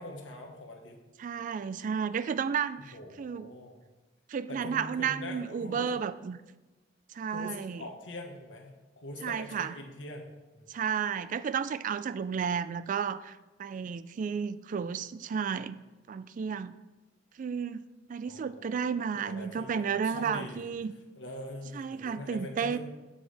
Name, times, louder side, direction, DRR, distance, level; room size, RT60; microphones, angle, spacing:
voice 1, 0.0-1.0 2.8-3.8 4.5-5.9 7.3-10.7 18.3-20.7 21.2-22.8, left 1 dB, 90° left, 3 dB, 1.3 m, -43 dB
voice 2, 1.2-3.5 4.3-6.4 7.1-7.8 9.2-9.7 10.7-15.8 16.1-16.7 17.4-17.8 18.1-20.9 21.7-22.8, right 6 dB, 45° right, 14 dB, 0.3 m, -32 dB
7.4 x 7.1 x 3.4 m, 1.1 s
head